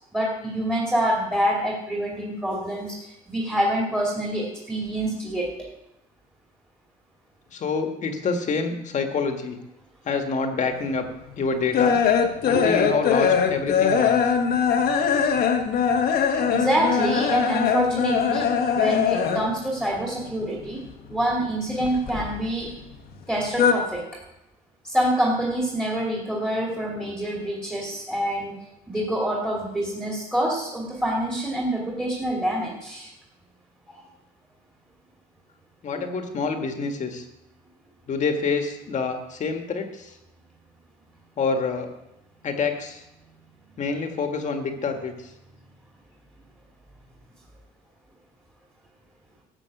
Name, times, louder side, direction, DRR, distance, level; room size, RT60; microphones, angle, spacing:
voice 1, 0.1-5.7 12.5-12.7 16.5-20.8 21.1-22.7 23.3-24.2 24.8-28.6 28.9-33.1 36.0-36.1, right 1 dB, 5° right, -3 dB, 2.6 m, -26 dB
voice 2, 7.5-9.6 10.1-11.1 11.4-12.0 12.5-14.3 35.8-37.2 38.1-40.1 41.4-41.9 42.4-43.0 43.8-45.1, left 4 dB, 45° left, 5 dB, 1.8 m, -27 dB
sound 1, 10.9-19.7 19.9-21.1 21.4-22.8 23.1-23.7, left 7 dB, 65° left, 1.4 m, -22 dB
13.0 x 6.3 x 7.9 m, 0.90 s
cardioid pair, 110°, 17 cm